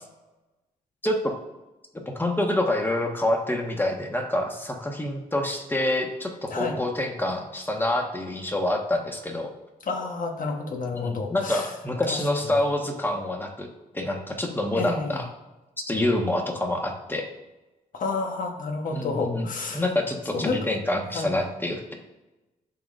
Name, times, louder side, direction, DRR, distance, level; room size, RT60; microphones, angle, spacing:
voice 1, 1.0-1.4 2.1-9.5 10.9-13.7 13.9-15.3 15.9-17.2 18.9-19.5 19.7-21.9, left 1 dB, 15° left, 2 dB, 1.4 m, -27 dB
voice 2, 6.5-6.8 9.8-11.7 12.1-12.3 14.7-15.2 17.9-19.8 20.3-20.6 21.1-21.4, left 3 dB, 60° left, 3 dB, 1.2 m, -30 dB
11.0 x 3.9 x 2.6 m, 1.0 s
supercardioid pair, 60°, 16 cm